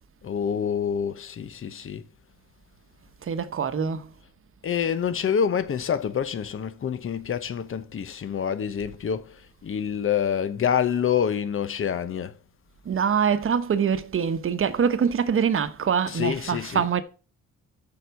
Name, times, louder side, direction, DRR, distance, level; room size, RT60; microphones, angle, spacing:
voice 1, 0.2-2.0 4.6-12.4 16.1-16.9, left 8 dB, 45° left, 1.0 m, -27 dB
voice 2, 3.2-4.1 12.8-17.0, right 7 dB, 45° right, 1.1 m, -24 dB
6.8 x 4.8 x 6.8 m
cardioid pair, 90°, 30 cm